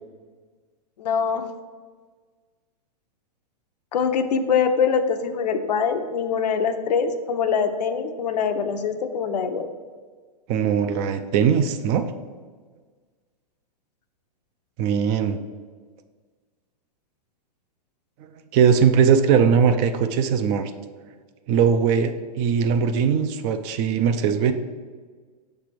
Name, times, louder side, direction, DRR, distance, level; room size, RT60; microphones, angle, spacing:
voice 1, 1.0-1.5 3.9-9.7, left 6 dB, 75° left, 7 dB, 0.7 m, -23 dB
voice 2, 10.5-12.1 14.8-15.4 18.5-20.7 21.5-24.5, right 7 dB, 35° right, 9 dB, 0.4 m, -20 dB
6.0 x 3.3 x 5.9 m, 1.5 s
hypercardioid pair, 130°, 21 cm